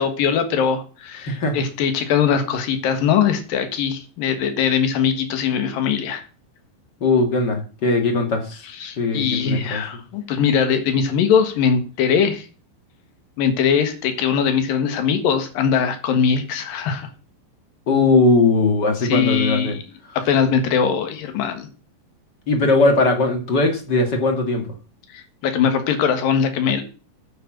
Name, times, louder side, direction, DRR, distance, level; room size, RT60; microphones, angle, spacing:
voice 1, 0.0-6.2 8.7-12.5 13.4-17.1 19.0-19.8 20.3-21.7 25.1-26.8, left 7 dB, 75° left, 3.3 m, -21 dB
voice 2, 1.2-1.6 7.0-8.6 9.0-9.8 17.9-19.8 22.5-24.7, left 3 dB, 35° left, 2.4 m, -19 dB
9.7 x 7.8 x 7.5 m
omnidirectional pair, 4.1 m